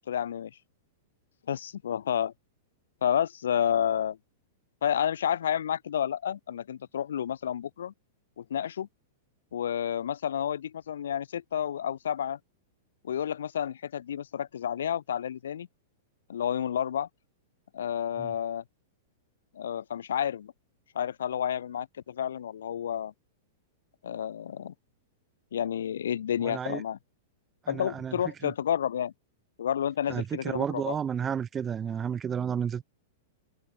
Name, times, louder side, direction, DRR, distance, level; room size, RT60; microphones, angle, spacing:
voice 1, 0.1-0.5 1.5-2.3 3.0-4.2 4.8-7.9 8.4-8.9 9.5-12.4 13.0-15.7 16.3-17.1 17.7-18.6 19.5-20.5 20.9-23.1 24.0-24.7 25.5-27.0 27.7-29.1 29.6-31.0, left 9 dB, 65° left, 4.2 m, -30 dB
voice 2, 26.4-26.8 27.7-28.1 28.4-28.5 30.1-32.8, right 8 dB, 20° right, 2.4 m, -32 dB
figure-of-eight pair, 100°, 0 cm